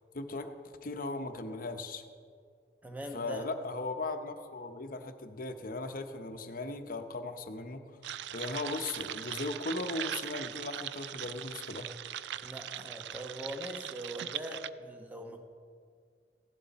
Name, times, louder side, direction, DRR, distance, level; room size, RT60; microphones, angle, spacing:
voice 1, 0.1-0.5 0.8-2.0 3.1-7.8 8.3-12.0, left 2 dB, 55° left, 7 dB, 0.9 m, -38 dB
voice 2, 2.8-3.5 12.4-15.4, right 1 dB, 10° right, 3 dB, 1.2 m, -42 dB
sound 1, 8.0-14.7, right 11 dB, 70° right, 0.4 m, -40 dB
16.0 x 12.0 x 4.2 m, 2.2 s
head